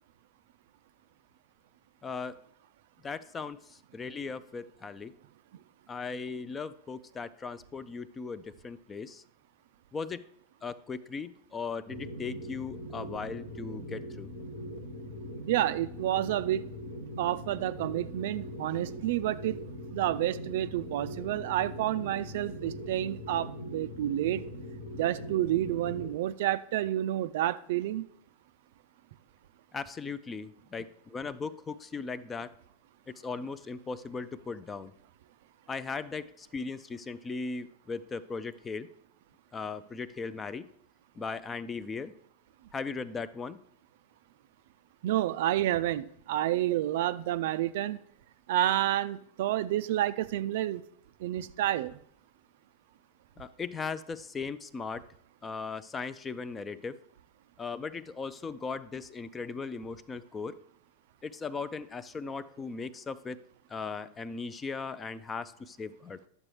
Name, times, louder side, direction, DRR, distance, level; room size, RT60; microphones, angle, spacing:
voice 1, 2.0-2.4 3.0-5.1 5.9-9.2 9.9-10.2 10.6-14.3 29.7-32.5 33.1-34.9 35.7-38.9 39.5-40.7 41.2-42.1 42.7-43.6 53.4-55.0 55.4-57.0 57.6-60.6 61.2-63.4 63.7-66.2, left 4 dB, 20° left, 16 dB, 0.4 m, -38 dB
sound 1, 11.9-26.1, equal, 60° left, 0.8 m, -41 dB
voice 2, 15.5-16.7 17.2-19.6 19.9-24.4 25.0-28.0 45.0-48.0 48.5-50.8 51.2-52.0, right 13 dB, 55° right, 14 dB, 0.3 m, -29 dB
10.5 x 6.7 x 3.2 m, 0.69 s
figure-of-eight pair, 90°, 0 cm